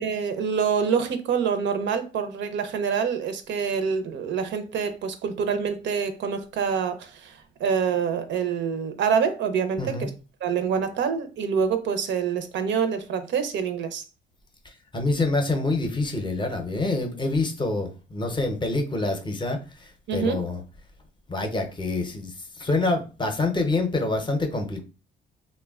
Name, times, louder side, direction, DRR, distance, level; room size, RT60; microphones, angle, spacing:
voice 1, 0.0-10.1 10.4-14.0 20.1-20.4, right 6 dB, 70° right, 0.5 m, -26 dB
voice 2, 9.8-10.1 14.6-20.6 21.3-24.8, left 2 dB, 25° left, 0.6 m, -26 dB
3.0 x 2.1 x 2.3 m
cardioid pair, 90°, 20 cm